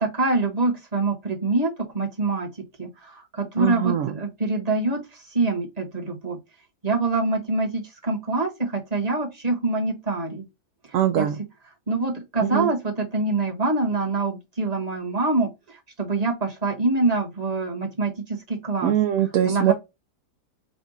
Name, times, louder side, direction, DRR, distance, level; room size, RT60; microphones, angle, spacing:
voice 1, 0.0-1.7 1.9-2.5 2.8-2.9 3.4-5.0 5.3-6.4 6.8-10.4 11.2-11.3 11.9-15.5 16.0-18.9 19.4-19.7, right 3 dB, 25° right, 1.3 m, -25 dB
voice 2, 3.6-4.2 10.9-11.4 12.4-12.7 18.8-19.7, right 10 dB, 70° right, 0.8 m, -22 dB
5.0 x 2.4 x 4.0 m
omnidirectional pair, 1.8 m